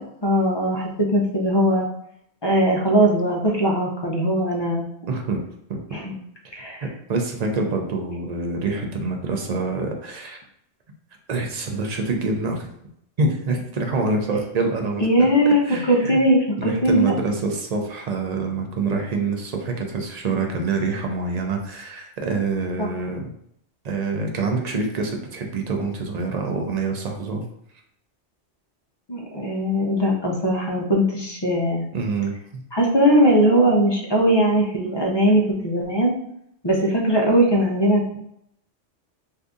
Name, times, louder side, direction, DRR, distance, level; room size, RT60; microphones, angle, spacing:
voice 1, 0.2-1.8 2.4-4.9 5.9-6.1 6.5-6.9 15.0-15.6 15.9-17.1 22.8-22.9 29.1-31.9 32.7-36.1 36.6-38.2, equal, 35° left, -1 dB, 0.4 m, -20 dB
voice 2, 5.1-5.4 5.7-5.8 6.4-6.6 7.1-10.4 11.3-12.7 13.2-15.1 15.5-16.2 16.6-23.3 23.8-27.4 31.9-32.6, right 3 dB, 50° right, 2 dB, 0.5 m, -26 dB
2.7 x 2.5 x 3.5 m, 0.74 s
omnidirectional pair, 1.2 m